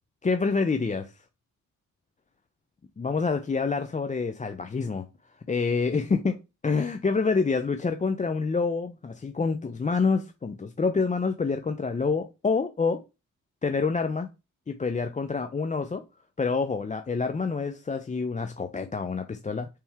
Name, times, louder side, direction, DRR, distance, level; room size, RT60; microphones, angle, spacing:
voice 1, 0.2-1.2 3.0-5.0 5.5-6.4 6.6-13.0 13.6-14.3 14.7-16.0 16.4-19.7, left 4 dB, 20° left, 0.5 m, -27 dB
4.4 x 3.4 x 3.4 m
supercardioid pair, 50°, 33 cm